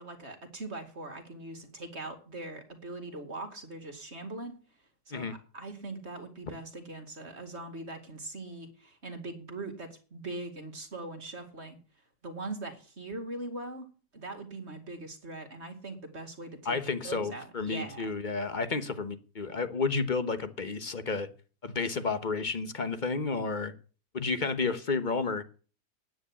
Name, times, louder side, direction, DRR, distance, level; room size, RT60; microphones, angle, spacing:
voice 1, 0.0-4.5 5.1-5.3 5.5-11.8 12.2-16.8 17.0-18.1, right 2 dB, 40° right, 2.4 m, -41 dB
voice 2, 16.6-21.3 21.6-23.7 24.1-25.4, left 4 dB, 35° left, 1.1 m, -31 dB
9.8 x 9.3 x 8.4 m
omnidirectional pair, 1.7 m